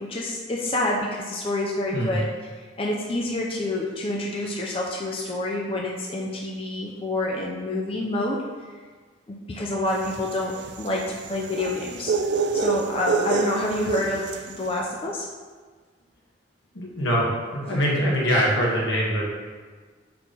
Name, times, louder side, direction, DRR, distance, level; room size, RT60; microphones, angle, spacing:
voice 1, 0.0-2.3 2.6-8.8 9.3-12.1 12.5-15.3, left 1 dB, 30° left, -2 dB, 0.5 m, -28 dB
sound 1, 10.0-14.6, right 5 dB, 60° right, 0.4 m, -27 dB
voice 2, 16.7-19.2, equal, 80° left, -4 dB, 1.5 m, -23 dB
4.5 x 3.9 x 5.4 m, 1.5 s
head